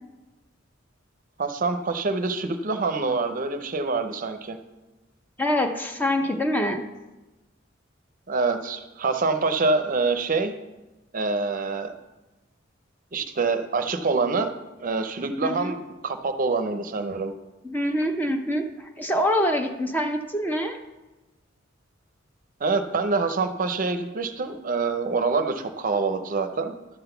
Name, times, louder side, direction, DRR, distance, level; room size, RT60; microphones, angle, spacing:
voice 1, 1.4-4.6 8.3-10.5 11.1-11.9 13.1-14.5 14.8-17.3 22.6-26.7, right 4 dB, 45° right, 8 dB, 0.6 m, -26 dB
voice 2, 5.4-6.8 15.4-15.7 17.6-20.8, equal, 10° left, 5 dB, 0.5 m, -25 dB
11.5 x 3.9 x 6.8 m, 1.1 s
head